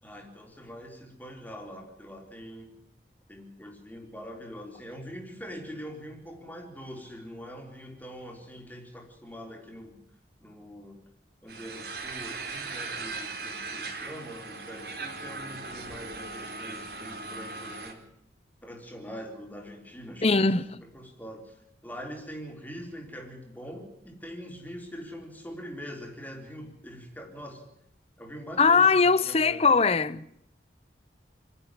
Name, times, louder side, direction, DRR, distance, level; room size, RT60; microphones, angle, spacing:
voice 1, 0.0-2.7 3.3-10.0 10.4-11.0 11.4-18.0 18.6-20.4 20.8-21.5 21.8-27.6 28.2-29.6, equal, 10° left, 3.9 m, -43 dB
sound 1, 11.5-17.9, right 3 dB, 60° right, 4.3 m, -38 dB
voice 2, 20.2-20.8 28.6-30.3, left 4 dB, 35° left, 0.7 m, -21 dB
29.0 x 11.5 x 9.9 m
head